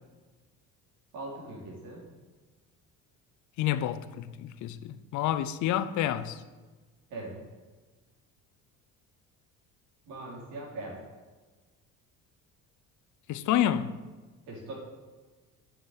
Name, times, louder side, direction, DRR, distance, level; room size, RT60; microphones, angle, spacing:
voice 1, 1.1-2.1 7.1-7.4 10.1-11.0 14.5-14.7, right 2 dB, 80° right, 3.6 m, -40 dB
voice 2, 3.6-6.4 13.3-13.9, left 11 dB, 65° left, 0.7 m, -29 dB
7.4 x 6.9 x 8.1 m
cardioid pair, 135°, 32 cm